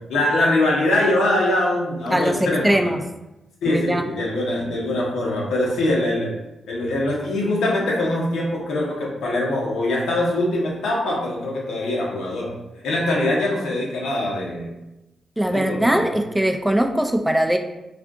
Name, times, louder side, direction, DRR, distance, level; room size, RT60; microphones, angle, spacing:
voice 1, 0.1-2.9 3.6-6.3 6.7-12.5 12.8-14.7 15.4-16.1, left 1 dB, 85° left, -3 dB, 0.8 m, -23 dB
voice 2, 2.1-3.0 3.7-4.0 15.4-17.6, right 1 dB, 10° right, 5 dB, 0.3 m, -20 dB
2.5 x 2.4 x 3.5 m, 0.96 s
supercardioid pair, 55°, 0 cm